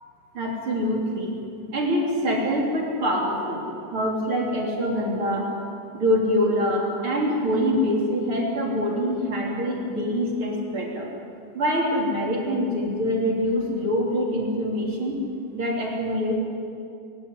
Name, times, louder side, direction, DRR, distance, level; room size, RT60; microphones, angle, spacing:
voice 1, 0.3-1.4 1.7-3.6 3.9-5.5 5.9-11.1 11.5-15.1 15.5-16.3, equal, 40° right, -1 dB, 4.3 m, -24 dB
22.5 x 16.5 x 9.7 m, 2.6 s
omnidirectional pair, 3.5 m